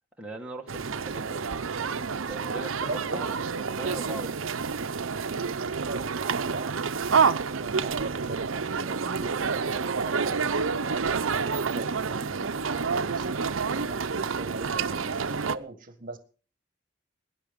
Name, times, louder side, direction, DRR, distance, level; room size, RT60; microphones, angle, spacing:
voice 1, 0.2-3.4 3.7-4.5, right 2 dB, 5° right, -1 dB, 1.7 m, -40 dB
sound 1, 0.7-15.6, right 5 dB, 85° right, 0.7 m, -28 dB
voice 2, 2.8-3.2 5.7-6.7 7.0-16.2, right 2 dB, 45° right, 9 dB, 1.6 m, -40 dB
19.5 x 10.5 x 5.2 m, 0.39 s
head